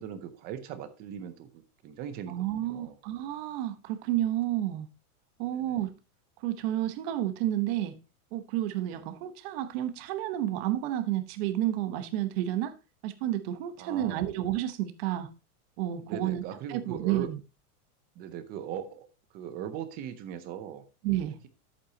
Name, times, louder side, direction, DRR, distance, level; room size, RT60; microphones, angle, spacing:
voice 1, 0.0-3.0 5.5-5.8 8.9-9.0 13.8-14.3 16.0-17.3 18.2-19.1 19.3-20.8, right 9 dB, 20° right, 0.5 m, -39 dB
voice 2, 2.3-4.9 5.4-5.9 6.4-7.9 8.3-12.7 13.0-15.3 15.8-16.4 16.7-17.4 21.0-21.4, right 13 dB, 40° right, 1.1 m, -30 dB
11.0 x 8.3 x 2.8 m
supercardioid pair, 170°, 46 cm